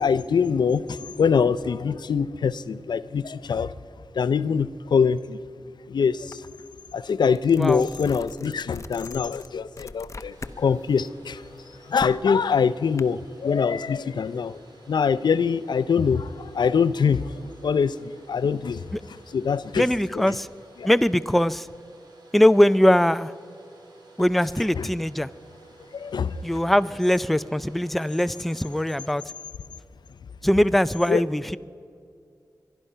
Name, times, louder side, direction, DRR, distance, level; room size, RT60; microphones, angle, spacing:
voice 1, 0.0-3.7 4.2-5.4 5.9-6.4 6.9-11.4 11.9-14.5 14.9-17.2 17.6-18.8 19.3-19.8 24.8-24.9 25.9-26.4 31.1-31.2, left 6 dB, 75° left, 16 dB, 0.5 m, -23 dB
sound 1, 6.3-6.5 6.9-10.6 11.0-13.0, left 3 dB, 40° left, 0.7 m, -41 dB
voice 2, 7.6-7.9 18.9-19.0 19.8-20.5 20.8-21.7 22.3-23.3 24.2-25.3 26.4-29.2 30.4-31.6, left 1 dB, ahead, 14 dB, 0.4 m, -21 dB
Domestic sounds home sounds, 10.3-29.1, right 3 dB, 65° right, 3.4 m, -52 dB
23.0 x 11.5 x 5.6 m, 2.3 s
cardioid pair, 50°, 7 cm